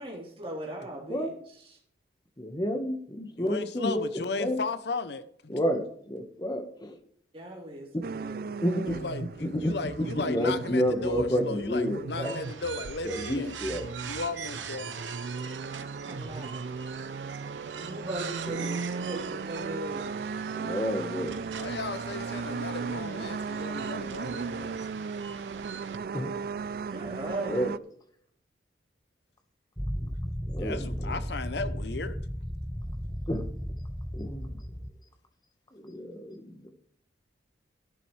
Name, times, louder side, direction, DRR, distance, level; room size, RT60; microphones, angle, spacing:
voice 1, 0.0-1.8 7.3-8.5 16.0-16.6 17.8-20.2 26.9-27.6, right 1 dB, 30° right, 3.8 m, -38 dB
voice 2, 2.4-4.0 4.4-4.6 5.5-7.0 7.9-8.0 8.6-9.0 9.4-9.7 10.1-12.3 13.0-13.9 18.5-18.7 20.5-21.3 26.1-26.3 27.0-27.1 27.5-27.7 30.0-30.1 30.5-31.1 33.3-33.4 34.1-34.5 35.7-36.7, equal, 20° left, 1.4 m, -30 dB
voice 3, 3.4-5.6 8.8-13.6 14.0-14.9 21.5-24.8 30.6-32.2, left 3 dB, 65° left, 0.8 m, -35 dB
sound 1, 8.0-27.8, right 5 dB, 50° right, 0.3 m, -37 dB
sound 2, 12.2-26.0, right 7 dB, 85° right, 1.1 m, -43 dB
sound 3, 29.8-34.9, equal, 5° left, 0.7 m, -35 dB
13.0 x 11.0 x 3.3 m
head